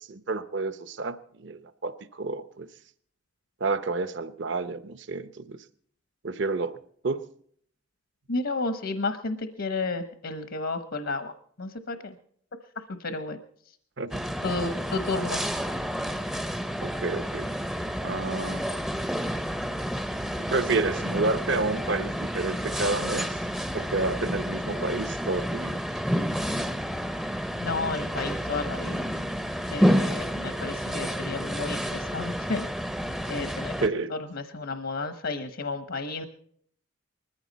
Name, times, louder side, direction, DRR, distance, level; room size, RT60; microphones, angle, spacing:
voice 1, 0.1-2.7 3.6-5.6 6.2-6.8 7.0-7.2 14.0-14.2 16.8-17.5 18.0-18.7 20.4-23.4 23.7-25.8 33.8-34.1, right 3 dB, 55° right, 12 dB, 0.8 m, -30 dB
voice 2, 8.3-11.3 11.6-12.2 12.8-13.4 14.4-15.4 27.6-29.1 29.7-32.7 33.3-33.8 34.1-36.2, left 3 dB, 65° left, 8 dB, 1.0 m, -32 dB
sound 1, 14.1-33.9, equal, ahead, 0.6 m, -30 dB
20.5 x 14.5 x 4.1 m, 0.62 s
head